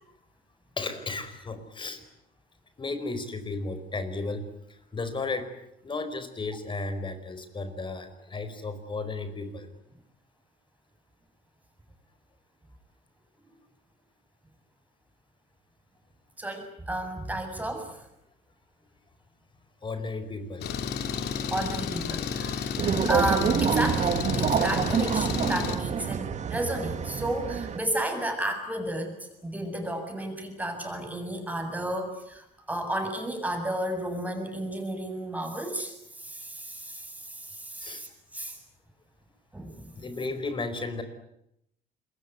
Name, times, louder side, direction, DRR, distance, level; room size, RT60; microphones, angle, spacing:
voice 1, 0.8-2.0 2.8-4.4 4.9-5.5 5.8-9.7 19.8-20.7 24.9-25.1 37.8-38.0 39.9-41.0, left 3 dB, 30° left, 10 dB, 4.8 m, -34 dB
voice 2, 16.4-18.0 21.5-38.6 39.5-40.0, right 1 dB, 10° right, 4 dB, 7.6 m, -33 dB
Engine, 20.6-25.8, left 7 dB, 75° left, 3.5 m, -32 dB
sound 1, 22.8-27.8, right 7 dB, 45° right, 2.0 m, -27 dB
27.0 x 22.5 x 9.6 m, 0.81 s
cardioid pair, 110°, 17 cm